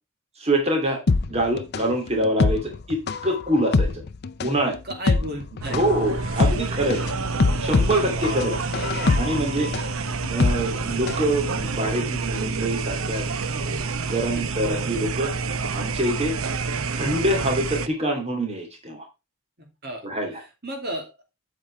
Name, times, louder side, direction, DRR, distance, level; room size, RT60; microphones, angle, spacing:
voice 1, 0.4-1.0 1.3-4.0 4.4-4.8 5.7-7.1 7.6-8.6 9.1-9.7 10.3-13.3 13.5-15.3 15.7-16.4 16.9-19.1 20.0-20.4, right 1 dB, 30° right, 3 dB, 2.6 m, -25 dB
sound 1, 1.1-11.3 11.6-11.7, left 3 dB, 50° left, 0.5 m, -24 dB
voice 2, 4.8-5.8 8.0-8.6 9.0-9.5 14.2-14.5 19.6-20.1 20.6-21.1, equal, 50° right, 2 dB, 2.6 m, -34 dB
sound 2, 5.6-17.9, right 4 dB, 85° right, 0.8 m, -28 dB
9.0 x 7.7 x 3.3 m, 0.25 s
head